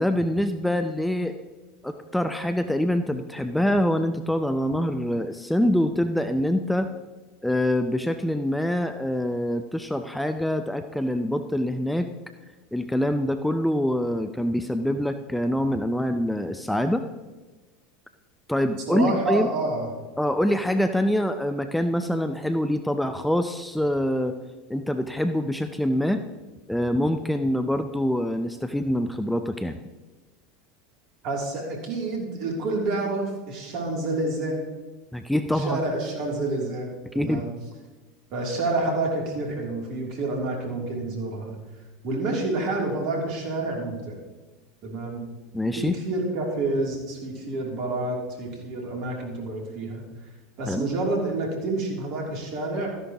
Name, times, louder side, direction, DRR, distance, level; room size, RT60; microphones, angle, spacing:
voice 1, 0.0-1.4 1.8-6.9 7.4-12.1 12.7-17.1 18.5-19.5 20.2-24.4 24.7-26.2 26.7-29.8 35.1-35.8 37.1-37.5 45.5-46.0 50.7-50.9, left 1 dB, 5° left, 8 dB, 0.6 m, -25 dB
voice 2, 18.9-19.9 31.2-34.7 35.5-37.5 38.3-41.6 42.0-44.2 44.8-45.3 45.7-50.1 50.6-53.0, right 2 dB, 55° right, 0 dB, 3.1 m, -28 dB
13.5 x 11.0 x 3.0 m, 1.2 s
figure-of-eight pair, 80°, 0 cm